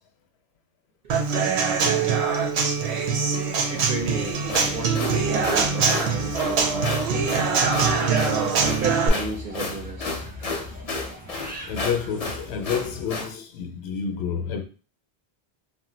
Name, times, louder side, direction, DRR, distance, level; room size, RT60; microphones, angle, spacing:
Human voice / Acoustic guitar / Drum, 1.1-9.1, right 5 dB, 90° right, 0.8 m, -23 dB
voice 1, 3.7-7.3 8.0-10.2, right 3 dB, 60° right, 0.7 m, -33 dB
sound 1, 3.9-13.1, left 1 dB, 15° right, 0.3 m, -40 dB
sound 2, 4.3-13.3, left 3 dB, 45° left, 0.5 m, -32 dB
voice 2, 11.7-14.6, left 7 dB, 80° left, 0.8 m, -29 dB
2.4 x 2.1 x 3.8 m
omnidirectional pair, 1.1 m